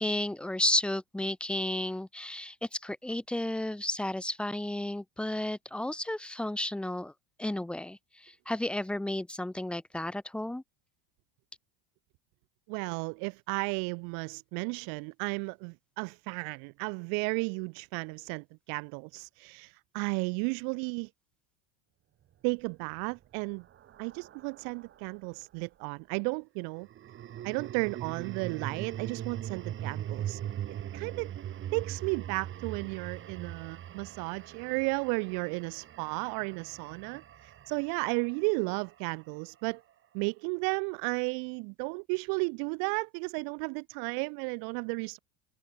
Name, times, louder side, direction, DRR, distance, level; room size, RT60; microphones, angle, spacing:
voice 1, 0.0-7.1 7.4-10.6, left 1 dB, 5° left, 0.7 m, -32 dB
voice 2, 12.7-21.1 22.4-23.6 24.0-26.9 27.4-30.4 30.9-31.3 31.7-39.8 40.1-45.2, right 39 dB, 60° right, 1.3 m, -34 dB
sound 1, 22.9-25.2 26.8-39.1, right 11 dB, 30° right, 3.3 m, -41 dB
cardioid pair, 160°, 39 cm